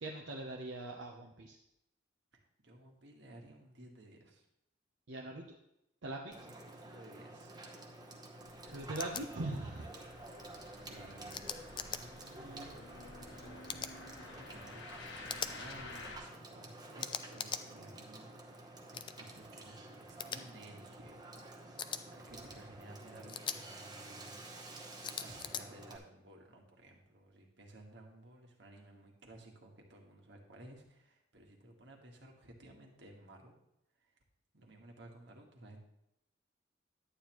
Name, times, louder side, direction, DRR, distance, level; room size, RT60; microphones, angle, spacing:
voice 1, 0.0-1.6 5.1-5.6 6.0-6.4 8.7-9.9, right 2 dB, 85° right, 0 dB, 0.9 m, -41 dB
voice 2, 2.3-4.4 6.4-7.5 10.8-11.5 11.7-21.6 22.0-24.8 25.2-33.5 33.9-34.2 34.5-35.8, right 1 dB, 70° right, 1 dB, 1.7 m, -56 dB
Water / Water tap faucet / Sink (filling or washing), 6.3-26.0, right 2 dB, 20° right, 1.0 m, -51 dB
sound 1, 8.4-16.2, left 3 dB, 85° left, 1.4 m, -52 dB
sound 2, 9.0-9.2 11.3-12.0 13.7-13.9 15.3-15.5 17.0-17.6 18.9-19.1 20.2-20.4 21.8-22.0 23.3-23.6 25.0-25.6, left 7 dB, 25° left, 0.4 m, -40 dB
11.5 x 8.8 x 3.1 m, 0.82 s
head